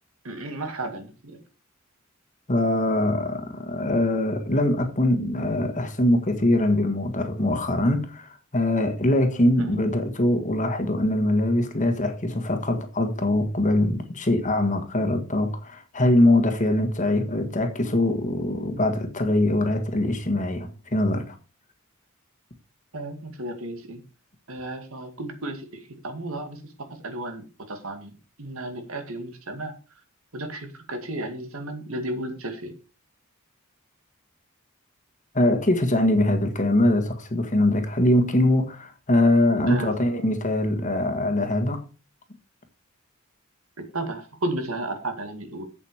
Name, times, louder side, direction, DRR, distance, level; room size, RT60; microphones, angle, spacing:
voice 1, 0.2-1.4 9.6-9.7 22.9-24.0 24.5-26.6 26.9-28.1 28.4-29.7 30.3-32.8 39.7-39.9 43.8-45.7, right 1 dB, 90° right, 2.2 m, -33 dB
voice 2, 2.5-21.3 35.3-41.8, left 1 dB, 35° left, 1.6 m, -22 dB
8.1 x 7.3 x 4.9 m
head